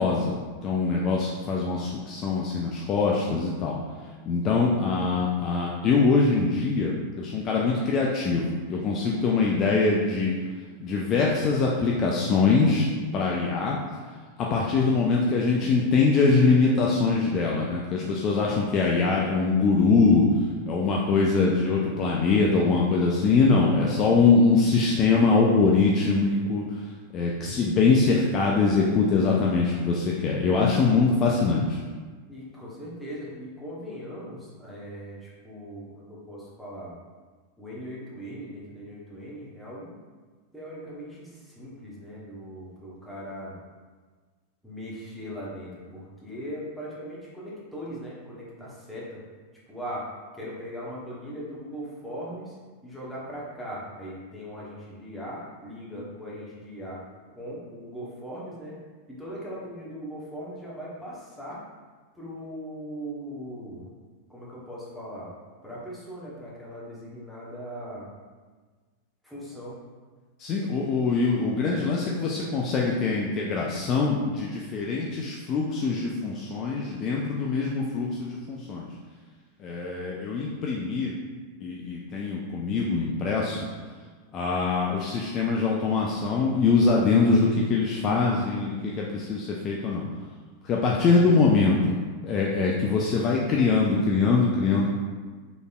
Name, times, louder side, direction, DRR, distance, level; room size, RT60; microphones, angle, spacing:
voice 1, 0.0-3.8 4.3-10.3 10.8-12.9 13.1-13.8 14.4-20.3 20.7-26.6 27.1-31.8 70.4-78.9 79.6-81.1 81.6-83.6 84.3-90.0 90.6-92.0 92.2-94.9, left 4 dB, 35° left, -2 dB, 0.4 m, -23 dB
voice 2, 32.3-36.9 37.6-39.9 40.5-43.5 44.6-49.2 49.7-50.1 50.3-52.6 52.8-57.0 57.3-58.8 59.1-61.6 62.1-63.9 64.3-65.3 65.6-68.1 69.2-69.8, equal, ahead, -7 dB, 1.1 m, -39 dB
4.1 x 3.3 x 2.3 m, 1.4 s
figure-of-eight pair, 90°, 0 cm